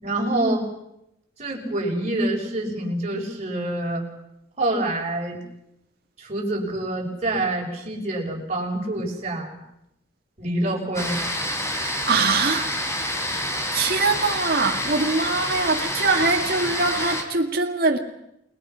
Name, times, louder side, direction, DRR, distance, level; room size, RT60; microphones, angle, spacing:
voice 1, 0.0-0.6 1.4-4.0 4.6-5.4 6.2-9.6 10.4-11.2, right 1 dB, 40° right, -3 dB, 6.2 m, -26 dB
sound 1, 10.9-17.2, left 1 dB, 15° left, 3.7 m, -28 dB
voice 2, 11.7-12.7 13.4-18.0, right 3 dB, 55° right, 2 dB, 2.1 m, -23 dB
29.5 x 21.0 x 5.8 m, 0.82 s
head